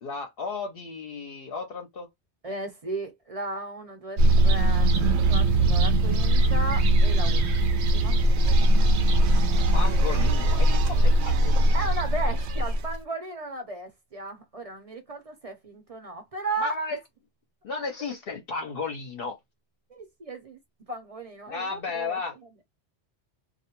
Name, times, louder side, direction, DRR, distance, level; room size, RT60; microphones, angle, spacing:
voice 1, 0.0-2.1 9.7-11.8 16.6-17.0 17.6-19.4 21.5-22.4, left 4 dB, 65° left, 0.8 m, -34 dB
voice 2, 2.4-5.0 5.3-7.4 7.7-8.2 11.7-16.7 19.9-20.6 20.9-22.2, right 2 dB, 40° right, 0.7 m, -35 dB
sound 1, 4.2-12.9, right 1 dB, 90° right, 0.9 m, -21 dB
2.4 x 2.1 x 2.9 m
omnidirectional pair, 1.1 m